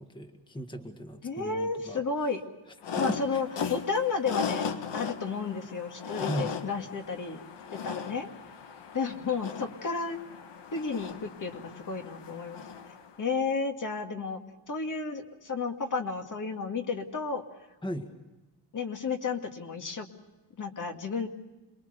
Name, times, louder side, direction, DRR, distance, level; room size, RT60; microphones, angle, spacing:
voice 1, 0.0-2.0 3.1-3.4 6.2-6.5 17.8-18.1, right 1 dB, 10° left, 6 dB, 1.7 m, -37 dB
voice 2, 1.2-2.4 3.0-7.4 7.7-8.3 8.9-10.2 10.7-12.6 13.2-14.4 14.7-17.4 18.7-20.1 20.6-21.3, left 4 dB, 45° left, 4 dB, 2.1 m, -32 dB
sound 1, 2.8-13.1, left 6 dB, 70° left, 1.7 m, -37 dB
27.5 x 21.5 x 6.6 m, 1.1 s
cardioid pair, 125°, 44 cm